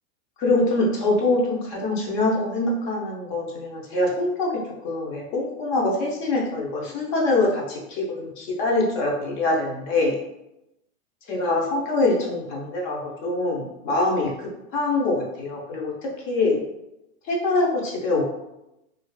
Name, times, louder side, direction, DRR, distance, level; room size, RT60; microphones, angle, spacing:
voice 1, 0.4-4.5 4.8-10.2 11.3-16.6 17.3-18.2, left 2 dB, 35° left, -2 dB, 0.7 m, -24 dB
2.4 x 2.3 x 2.2 m, 0.89 s
supercardioid pair, 150°, 43 cm